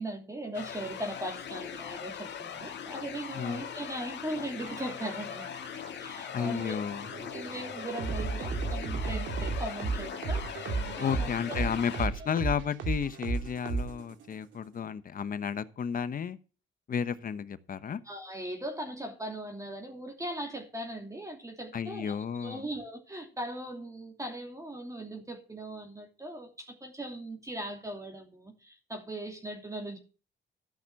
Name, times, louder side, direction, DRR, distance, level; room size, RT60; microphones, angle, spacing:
voice 1, 0.0-5.5 5.9-6.8 7.2-10.7 11.0-11.6 18.0-30.0, right 1 dB, 15° right, 2 dB, 2.9 m, -39 dB
sound 1, 0.5-12.1, left 8 dB, 60° left, 1.9 m, -40 dB
sound 2, 4.6-14.3, right 4 dB, 75° right, 2.2 m, -34 dB
voice 2, 6.3-7.1 11.0-16.4 16.9-18.0 21.7-22.6, left 7 dB, 45° left, 14 dB, 1.0 m, -32 dB
13.0 x 6.1 x 7.1 m, 0.36 s
cardioid pair, 90°, 20 cm